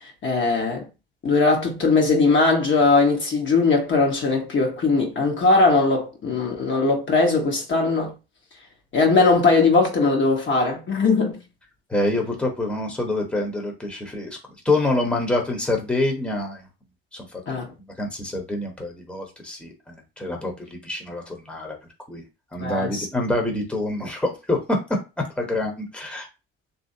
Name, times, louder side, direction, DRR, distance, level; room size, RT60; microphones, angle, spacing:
voice 1, 0.2-0.9 1.2-8.1 8.9-11.4 17.5-17.7 22.6-23.1, left 3 dB, 40° left, 1.2 m, -20 dB
voice 2, 11.9-14.3 14.6-16.6 17.1-17.2 18.0-21.8 22.1-22.2 22.5-24.6 25.4-26.3, left 2 dB, 5° left, 1.1 m, -26 dB
2.9 x 2.7 x 2.7 m
hypercardioid pair, 60°, 30 cm